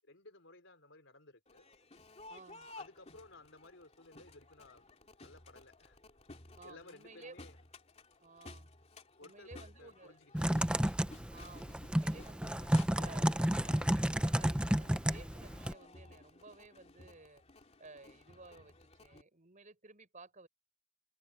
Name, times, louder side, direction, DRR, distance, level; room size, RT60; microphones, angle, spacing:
voice 1, 0.0-1.7 2.7-4.8 5.2-6.0 6.6-7.6 9.2-10.6, left 2 dB, 60° left, 4.5 m, -57 dB
Crowd, 1.5-19.2, left 2 dB, 30° left, 2.6 m, -55 dB
voice 2, 2.3-2.7 6.6-7.5 8.2-8.7 9.2-10.2 11.3-17.4 17.8-20.5, right 3 dB, 35° right, 5.4 m, -56 dB
Typing, 10.3-15.7, equal, 5° right, 0.6 m, -31 dB
head